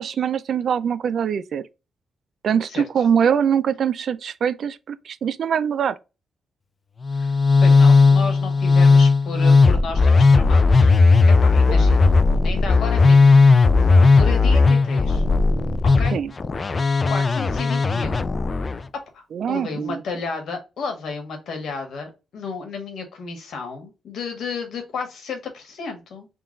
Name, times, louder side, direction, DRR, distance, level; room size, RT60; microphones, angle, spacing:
voice 1, 0.0-1.6 2.4-6.0 11.7-11.8 16.1-16.3 19.3-20.0, right 8 dB, 65° right, 0.4 m, -23 dB
Musical instrument, 7.0-18.8, left 4 dB, 30° left, 0.4 m, -16 dB
voice 2, 7.6-10.9 11.4-12.1 12.4-13.4 13.7-15.2 16.0-16.2 16.7-18.2 19.1-26.3, left 4 dB, 75° left, 1.4 m, -32 dB
3.8 x 2.4 x 3.7 m
cardioid pair, 105°, 0 cm